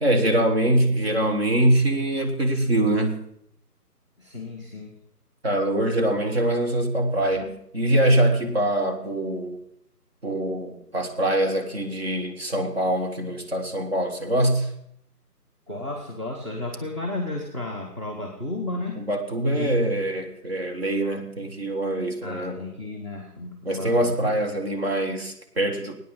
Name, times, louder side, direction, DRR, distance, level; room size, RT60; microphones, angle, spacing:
voice 1, 0.0-3.2 5.4-9.6 10.2-14.7 19.0-22.6 23.7-25.9, right 1 dB, 40° right, 3 dB, 1.6 m, -23 dB
voice 2, 4.2-4.9 15.7-19.0 19.6-19.8 22.2-24.3, left 2 dB, 20° right, -1 dB, 1.1 m, -33 dB
20.5 x 9.5 x 3.9 m, 0.72 s
figure-of-eight pair, 160°, 48 cm